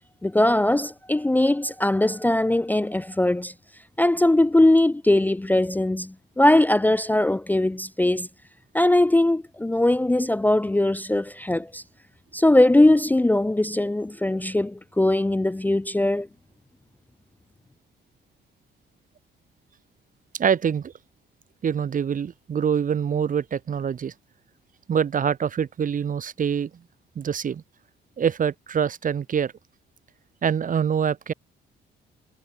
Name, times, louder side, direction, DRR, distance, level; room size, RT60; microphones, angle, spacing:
voice 1, 0.2-3.5 4.0-8.3 8.7-11.8 12.3-16.3, left 1 dB, 10° left, 0.5 m, -20 dB
voice 2, 20.3-20.9 21.6-24.1 24.9-26.7 27.2-27.6 28.2-29.5 30.4-31.3, right 7 dB, 40° right, 0.9 m, -25 dB
cardioid pair, 90°, 20 cm